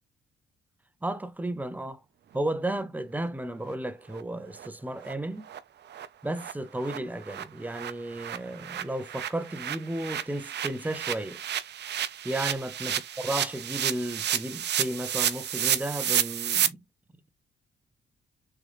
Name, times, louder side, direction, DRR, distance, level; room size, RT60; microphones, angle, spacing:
voice 1, 1.0-2.0 2.3-5.4 6.2-11.4 12.2-16.8, right 1 dB, 10° right, 0.6 m, -33 dB
sound 1, 3.7-3.8 4.1-4.2 4.6-4.7 5.0-5.1 5.5-5.6 5.9-6.1 6.4-6.5 6.8-16.7, right 10 dB, 55° right, 0.6 m, -31 dB
3.8 x 3.3 x 3.0 m
cardioid pair, 95°, 21 cm